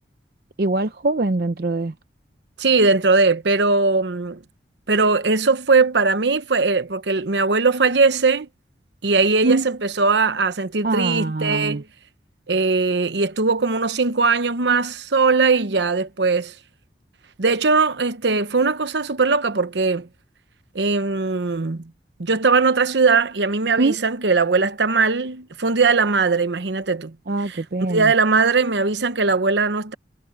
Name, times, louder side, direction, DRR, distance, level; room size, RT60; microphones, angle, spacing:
voice 1, 0.6-1.9 9.4-9.6 10.8-11.8 23.8-24.0 27.3-28.1, right 2 dB, 55° right, 0.6 m, -22 dB
voice 2, 2.6-4.4 4.9-8.5 9.0-11.8 12.5-16.5 17.4-20.1 20.7-21.9 22.2-27.1 27.5-29.9, right 4 dB, 75° right, 0.9 m, -20 dB
head